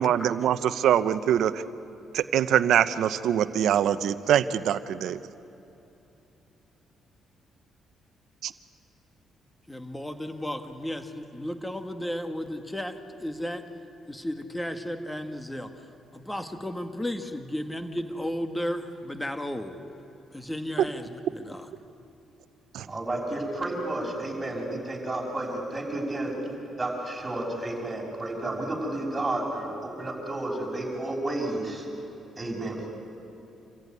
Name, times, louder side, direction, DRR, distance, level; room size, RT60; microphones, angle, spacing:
voice 1, 0.0-1.6 2.1-5.2 8.4-8.5 22.7-22.9, right 10 dB, 75° right, 12 dB, 0.8 m, -23 dB
voice 2, 9.7-13.7 14.1-19.8 20.3-21.7, left 1 dB, 10° left, 7 dB, 1.6 m, -34 dB
voice 3, 22.9-26.4 26.8-31.8 32.4-32.9, right 2 dB, 15° right, -1 dB, 6.3 m, -31 dB
27.0 x 14.5 x 9.7 m, 3.0 s
cardioid pair, 90°, 0 cm